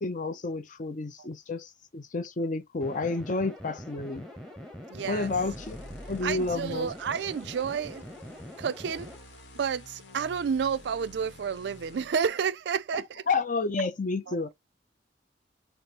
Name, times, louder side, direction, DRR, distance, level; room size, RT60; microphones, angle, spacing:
voice 1, 0.0-4.2 5.1-5.8 6.1-6.9 13.3-14.5, left 3 dB, 45° left, 0.6 m, -30 dB
sound 1, 2.8-9.2, equal, 5° left, 0.9 m, -44 dB
voice 2, 4.9-5.3 6.2-8.0 8.6-9.1 9.5-13.2 14.3-14.4, right 6 dB, 65° right, 0.3 m, -30 dB
sound 2, 5.0-12.2, left 1 dB, 75° left, 1.1 m, -49 dB
5.2 x 2.0 x 2.8 m
head